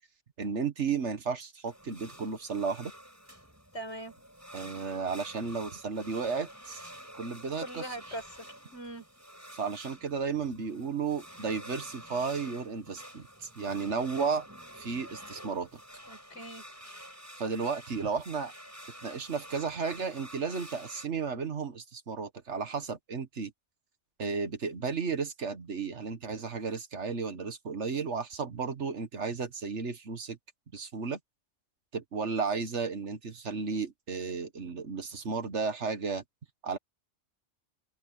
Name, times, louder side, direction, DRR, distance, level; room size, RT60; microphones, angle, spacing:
voice 1, 0.4-2.9 4.5-8.0 9.5-14.4 14.8-15.7 17.4-18.5 19.0-23.5 24.2-30.4 30.7-31.2 31.9-36.2 36.6-36.8, right 5 dB, 80° right, 1.8 m, -33 dB
sound 1, 1.6-21.1, equal, 15° right, 7.1 m, -49 dB
voice 2, 3.7-4.1 7.6-8.5 8.7-9.0 16.1-16.6, right 1 dB, 75° left, 5.4 m, -41 dB
omnidirectional pair, 1.2 m